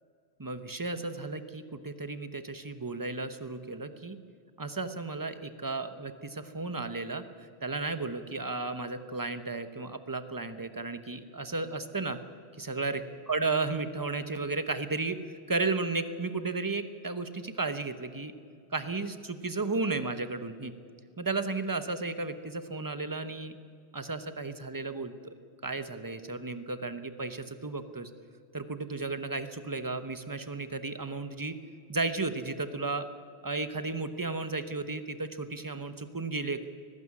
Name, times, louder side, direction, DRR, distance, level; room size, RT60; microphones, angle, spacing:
voice 1, 0.4-4.2 4.6-12.2 12.6-18.3 18.7-20.7 21.2-23.6 23.9-25.3 25.6-28.1 28.5-31.5 31.9-33.1 33.4-36.7, right 3 dB, 20° right, 10 dB, 1.0 m, -34 dB
20.0 x 15.0 x 9.7 m, 2.3 s
omnidirectional pair, 1.2 m